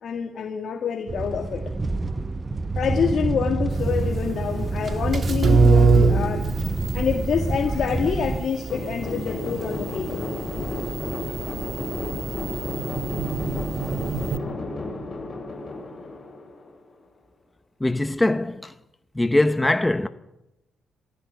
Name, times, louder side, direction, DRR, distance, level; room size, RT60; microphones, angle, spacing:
voice 1, 0.0-1.7 2.8-6.5 6.9-10.3 11.3-11.4, left 6 dB, 60° left, 2.1 m, -27 dB
sound 1, 1.1-8.4, right 3 dB, 25° right, 1.1 m, -27 dB
sound 2, 3.7-14.4, right 4 dB, 40° right, 1.6 m, -25 dB
sound 3, 8.7-17.0, left 2 dB, 30° left, 7.9 m, -33 dB
voice 2, 17.8-18.7 19.1-20.1, left 2 dB, 10° left, 0.9 m, -21 dB
20.0 x 16.0 x 9.5 m
cardioid pair, 90°, 0 cm